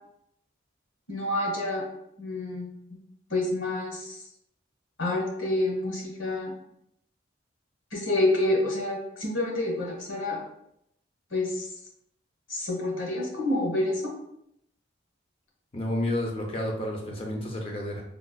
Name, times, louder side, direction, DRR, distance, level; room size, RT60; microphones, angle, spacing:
voice 1, 1.1-1.8 2.2-3.0 3.3-4.2 5.0-6.5 7.9-10.4 11.3-11.7 12.5-14.1, left 1 dB, 90° left, -2 dB, 1.1 m, -28 dB
voice 2, 15.7-18.0, left 1 dB, 30° left, 0 dB, 0.5 m, -30 dB
4.1 x 2.3 x 2.2 m, 0.78 s
head